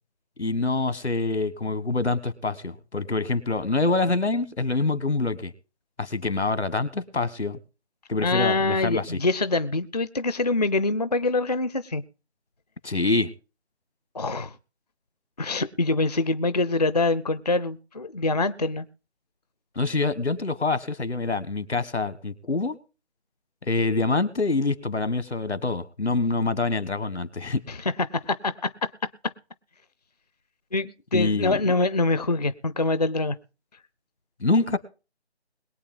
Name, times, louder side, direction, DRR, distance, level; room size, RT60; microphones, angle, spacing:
voice 1, 0.4-5.5 6.0-7.6 8.1-9.2 12.8-13.3 19.7-22.8 23.7-27.6 31.1-31.6 34.4-34.8, left 3 dB, 80° left, 16 dB, 1.5 m, -25 dB
voice 2, 8.2-12.0 14.1-14.5 15.4-18.9 27.7-28.7 29.2-29.3 30.7-33.4, left 2 dB, 40° left, 15 dB, 0.5 m, -25 dB
22.0 x 8.5 x 3.9 m, 0.34 s
figure-of-eight pair, 165°, 33 cm